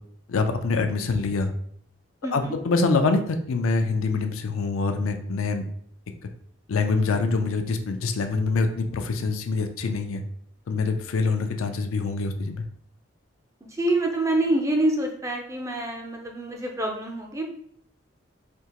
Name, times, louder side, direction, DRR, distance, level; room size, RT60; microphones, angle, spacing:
voice 1, 0.3-1.5 2.3-5.6 6.7-10.2 10.7-12.7, left 3 dB, 85° left, 6 dB, 0.4 m, -25 dB
voice 2, 2.2-2.5 13.7-17.4, right 1 dB, 15° right, 2 dB, 0.4 m, -26 dB
3.5 x 2.8 x 2.9 m, 0.65 s
head